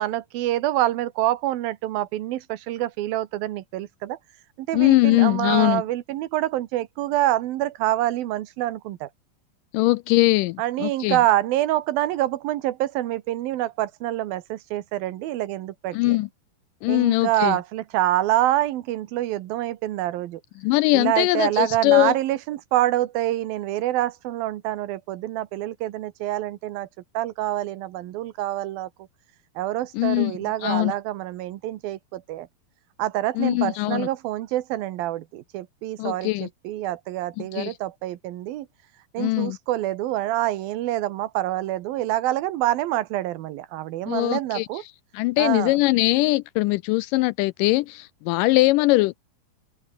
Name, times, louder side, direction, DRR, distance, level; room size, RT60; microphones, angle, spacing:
voice 1, 0.0-4.2 4.6-9.1 10.6-16.2 16.9-20.4 20.9-26.9 27.1-28.9 29.6-32.5 33.0-38.7 39.1-44.8 45.4-45.7, right 14 dB, 80° right, 2.9 m, -26 dB
voice 2, 4.7-5.8 9.7-11.2 15.9-16.3 16.8-17.6 20.6-22.1 29.9-30.3 30.6-30.9 33.4-34.1 36.0-36.5 37.5-37.7 39.2-39.6 44.1-44.7 45.1-49.2, left 20 dB, 80° left, 2.0 m, -21 dB
omnidirectional pair, 4.1 m